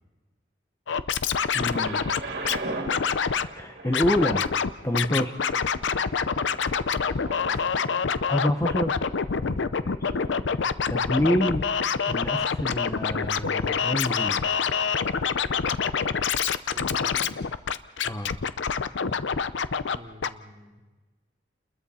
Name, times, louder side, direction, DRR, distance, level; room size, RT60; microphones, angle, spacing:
Scratching (performance technique), 0.9-2.6 2.9-3.5 3.9-4.7 4.9-20.0 20.2-20.3, left 6 dB, 85° left, 0.6 m, -26 dB
voice 1, 1.5-2.1 3.5-4.6 4.8-5.4 8.3-8.9 9.4-10.2 10.5-10.6 10.9-11.6 12.1-14.5 18.0-18.3, equal, 15° left, 6 dB, 0.9 m, -27 dB
Thunder, 1.5-13.4 14.1-14.2, right 2 dB, 65° right, 3.0 m, -41 dB
voice 2, 7.0-7.7 9.4-9.6 16.7-17.3 19.9-20.8, equal, 35° right, 0 dB, 2.5 m, -47 dB
30.0 x 21.5 x 4.3 m, 1.2 s
head